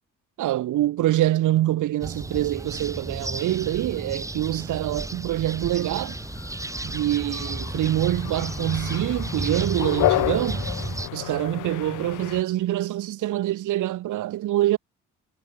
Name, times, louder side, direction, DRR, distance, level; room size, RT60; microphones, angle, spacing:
voice 1, 0.4-6.2 6.8-10.6 11.1-14.8, right 14 dB, 85° right, 3.5 m, -25 dB
sound 1, 2.0-11.1, right 2 dB, 10° right, 1.6 m, -33 dB
sound 2, 5.6-12.4, left 17 dB, 90° left, 1.5 m, -31 dB
cardioid pair, 90°, 30 cm